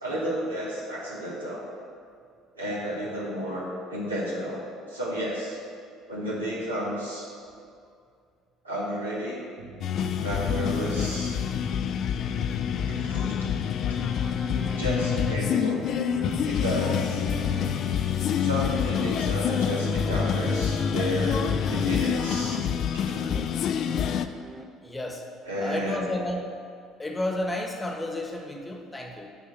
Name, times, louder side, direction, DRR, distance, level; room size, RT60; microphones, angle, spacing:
voice 1, 0.0-1.7 2.5-5.6 6.1-7.3 8.6-9.4 10.2-11.4 12.9-13.5 14.8-15.8 16.4-17.2 18.4-22.6 22.9-23.3 25.5-26.1, equal, 90° right, -6 dB, 1.4 m, -32 dB
sound 1, 9.6-16.5, right 4 dB, 70° right, 0.6 m, -46 dB
sound 2, 9.8-24.3, left 8 dB, 50° left, 0.4 m, -27 dB
sound 3, 10.7-24.6, right 1 dB, 10° right, 0.6 m, -41 dB
voice 2, 24.8-25.3 25.6-26.4 27.0-29.3, left 1 dB, 15° left, 3 dB, 1.1 m, -31 dB
7.2 x 4.5 x 6.5 m, 2.3 s
figure-of-eight pair, 55°, 0 cm